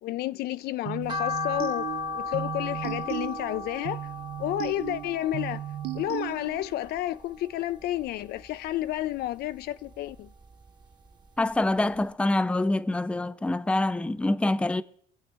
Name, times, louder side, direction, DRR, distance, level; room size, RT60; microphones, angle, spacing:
voice 1, 0.0-1.9 2.1-4.0 4.4-5.6 5.9-10.3, left 14 dB, 70° left, 0.4 m, -31 dB
sound 1, 0.9-6.8, right 13 dB, 70° right, 0.5 m, -36 dB
sound 2, 1.1-7.4 7.8-8.9 9.3-10.7 11.1-11.2 11.6-11.7 12.0-12.1, left 4 dB, 25° right, 1.0 m, -36 dB
voice 2, 11.4-14.8, left 2 dB, 5° left, 0.5 m, -25 dB
23.5 x 8.2 x 3.4 m
cardioid pair, 110°, 17 cm